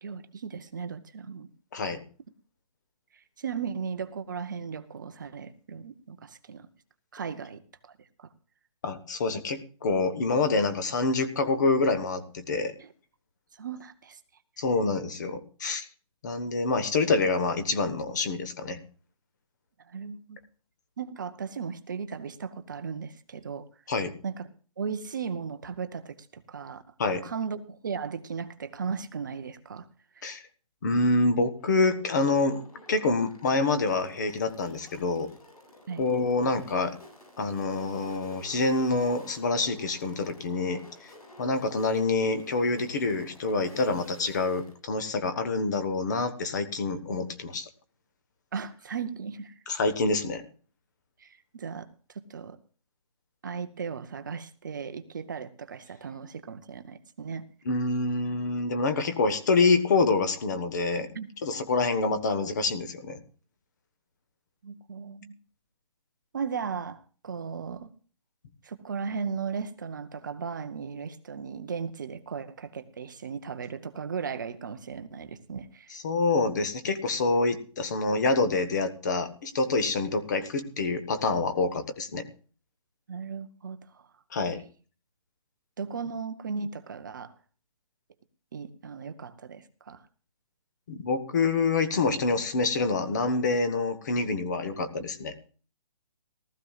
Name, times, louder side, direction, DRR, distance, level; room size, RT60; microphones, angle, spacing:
voice 1, 0.0-1.5 3.1-6.7 7.1-8.3 12.8-12.9 13.5-14.2 19.8-20.4 21.0-23.7 24.2-24.5 24.8-26.8 27.2-29.9 30.1-30.3 35.9-36.0 48.5-49.5 51.2-52.6 53.4-57.4 61.1-61.3 64.6-65.4 66.3-67.9 68.6-76.0 83.1-84.1 85.8-87.3 88.5-90.0, right 6 dB, 35° right, 10 dB, 0.7 m, -36 dB
voice 2, 1.7-2.0 8.8-12.7 14.6-15.9 16.2-18.8 23.9-24.1 27.0-27.2 30.2-30.4 30.8-32.6 32.9-35.3 36.0-37.0 37.4-41.1 41.4-47.7 49.7-50.4 57.6-61.1 61.4-63.2 75.9-82.3 84.3-84.6 90.9-95.3, left 3 dB, 30° left, 11 dB, 1.1 m, -26 dB
sound 1, 31.6-44.7, left 1 dB, 85° left, 7.7 m, -52 dB
18.5 x 13.5 x 2.4 m, 0.38 s
hypercardioid pair, 170°, 19 cm